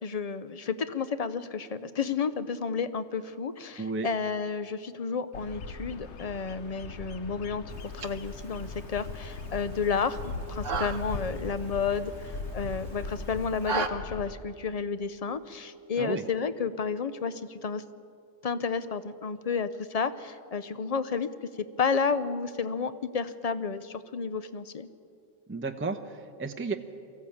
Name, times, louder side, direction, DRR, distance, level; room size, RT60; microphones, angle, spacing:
voice 1, 0.0-10.2 10.5-17.8 18.4-21.3 21.6-24.9, left 5 dB, 40° left, 13 dB, 0.7 m, -31 dB
voice 2, 3.8-4.1 16.0-16.2 25.5-26.7, right 4 dB, 10° right, 7 dB, 0.7 m, -32 dB
Bird vocalization bird call bird song, 5.3-14.3, left 3 dB, 65° left, 1.2 m, -39 dB
sound 1, 7.7-13.9, right 5 dB, 80° right, 1.4 m, -38 dB
23.0 x 15.0 x 8.6 m, 2.5 s
omnidirectional pair, 1.3 m